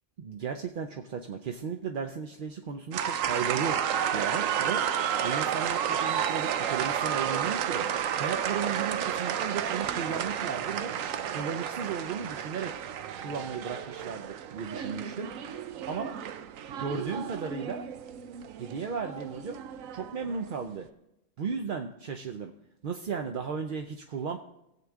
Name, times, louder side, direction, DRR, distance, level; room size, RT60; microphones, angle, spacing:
voice 1, 0.2-3.8 4.1-4.9 5.2-7.9 8.2-11.0 11.3-12.8 13.2-15.3 15.9-16.1 16.8-17.9 18.6-19.6 19.9-20.9 21.4-22.5 22.8-24.4, right 6 dB, 55° right, 5 dB, 0.6 m, -35 dB
sound 1, 2.9-20.6, right 9 dB, 80° right, 1.0 m, -32 dB
18.5 x 7.5 x 3.6 m, 0.86 s
omnidirectional pair, 1.4 m